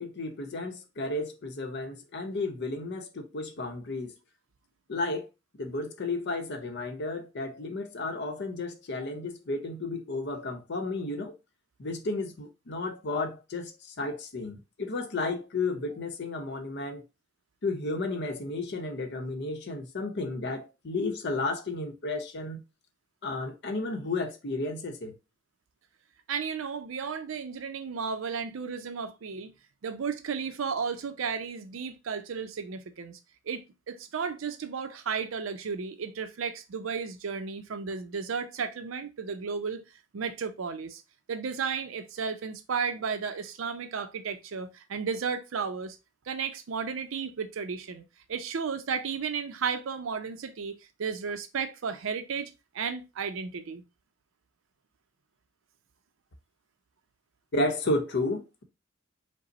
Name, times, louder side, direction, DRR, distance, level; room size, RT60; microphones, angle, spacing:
voice 1, 0.0-4.1 4.9-5.3 5.6-11.3 11.8-17.0 17.6-22.6 23.2-25.2 57.5-58.6, left 2 dB, 60° left, 0.7 m, -32 dB
voice 2, 26.3-29.5 29.8-33.2 33.5-39.8 40.1-41.0 41.3-46.0 46.3-48.0 48.3-53.8, right 6 dB, 75° right, 0.5 m, -33 dB
5.1 x 2.0 x 3.9 m
head